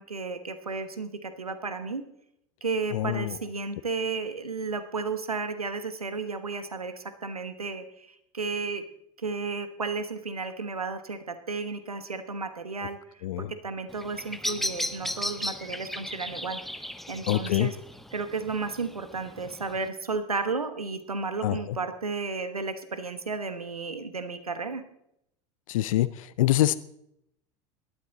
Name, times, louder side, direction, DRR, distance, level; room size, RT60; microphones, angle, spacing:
voice 1, 0.0-2.1 2.6-8.8 9.2-17.8 18.1-24.8, right 4 dB, 90° right, 10 dB, 1.1 m, -33 dB
voice 2, 2.9-3.3 13.2-13.5 17.3-17.7 21.4-21.6 25.7-26.7, left 14 dB, 65° left, 15 dB, 0.6 m, -25 dB
Bird vocalization bird call bird song, 13.9-19.9, equal, ahead, 0.9 m, -36 dB
18.5 x 12.5 x 4.0 m, 0.76 s
figure-of-eight pair, 80°, 18 cm